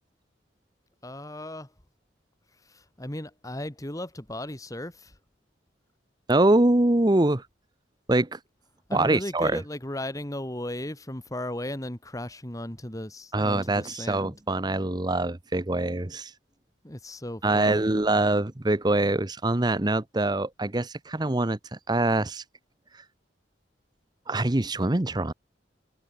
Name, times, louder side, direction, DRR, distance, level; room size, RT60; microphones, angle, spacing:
voice 1, 1.0-1.7 2.7-5.1 8.9-14.4 16.8-17.9, left 1 dB, 20° left, 2.0 m, -36 dB
voice 2, 6.3-7.4 8.1-8.4 8.9-9.6 13.3-16.3 17.4-22.4 24.3-25.3, right 2 dB, 25° right, 0.9 m, -24 dB
head